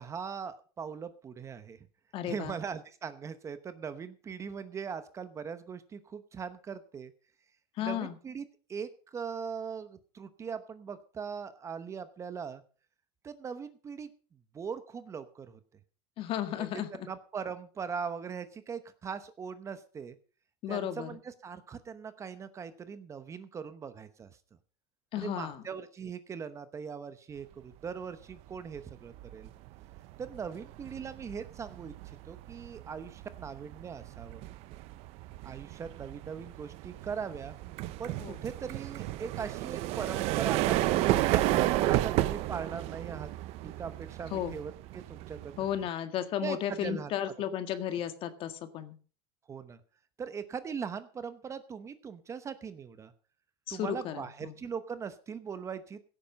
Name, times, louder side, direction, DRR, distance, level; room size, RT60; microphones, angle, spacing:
voice 1, 0.0-1.8 2.2-7.1 7.8-12.6 13.2-14.1 14.5-15.6 16.6-20.2 20.7-24.3 25.2-29.5 30.2-34.4 35.4-37.6 38.0-43.3 43.6-45.7 46.4-47.1 49.5-49.8 50.2-53.1 53.7-56.0, right 6 dB, 20° right, 12 dB, 0.9 m, -40 dB
voice 2, 2.1-2.6 7.8-8.2 16.2-17.1 20.6-21.1 25.1-25.6 38.2-38.4 44.3-44.6 45.6-49.0 53.7-54.6, left 10 dB, 40° left, 9 dB, 1.8 m, -34 dB
sound 1, 28.5-28.8 29.1-45.9, right 16 dB, 50° right, 0.8 m, -32 dB
16.5 x 8.8 x 5.3 m, 0.39 s
supercardioid pair, 145°, 14 cm